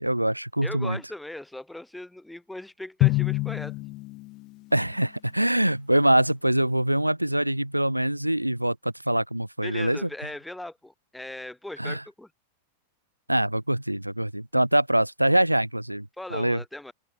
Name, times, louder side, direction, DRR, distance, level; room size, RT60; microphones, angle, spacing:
voice 1, 0.0-1.0 4.7-10.1 11.8-12.0 13.3-16.6, right 1 dB, 85° right, 1.4 m, -24 dB
voice 2, 0.6-3.7 9.6-12.3 16.2-16.9, left 1 dB, 5° left, 4.0 m, -39 dB
Drum, 3.0-4.7, left 21 dB, 40° left, 1.2 m, -26 dB
open air
figure-of-eight pair, 90°, 0 cm